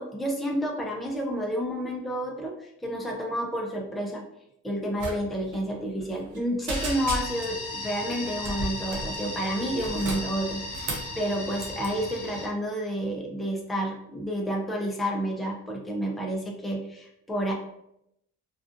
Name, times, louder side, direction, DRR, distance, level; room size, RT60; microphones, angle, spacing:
voice 1, 0.0-4.2 4.6-17.5, equal, ahead, -1 dB, 0.5 m, -30 dB
sound 1, 5.0-5.2 5.4-5.6 6.0-6.4 6.7-7.6 8.4-9.1 9.7-11.1 11.6-11.9, right 2 dB, 80° right, 0.7 m, -34 dB
sound 2, 6.7-12.5, left 2 dB, 55° left, 0.8 m, -36 dB
2.5 x 2.3 x 2.4 m, 0.79 s
cardioid pair, 90°, 30 cm